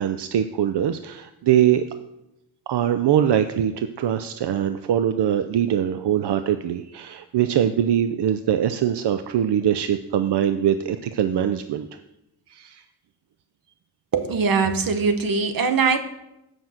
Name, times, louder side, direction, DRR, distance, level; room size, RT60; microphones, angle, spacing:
voice 1, 0.0-1.9 2.7-11.9 12.5-12.8, right 10 dB, 80° right, 10 dB, 0.5 m, -22 dB
voice 2, 14.1-16.0, right 5 dB, 60° right, 8 dB, 1.0 m, -21 dB
7.8 x 5.8 x 7.7 m, 0.89 s
wide cardioid pair, 135°, 40 cm